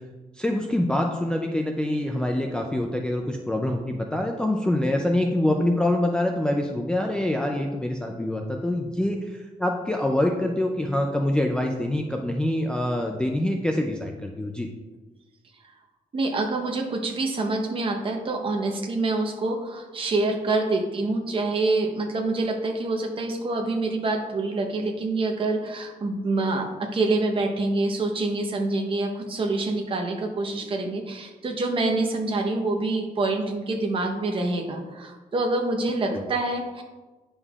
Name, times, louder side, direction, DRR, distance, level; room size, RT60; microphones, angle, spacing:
voice 1, 0.4-14.7 36.1-36.2, left 1 dB, 5° left, 1 dB, 0.4 m, -25 dB
voice 2, 16.1-36.8, right 2 dB, 35° right, 3 dB, 0.9 m, -26 dB
9.8 x 5.4 x 2.4 m, 1.2 s
wide cardioid pair, 165°, 15 cm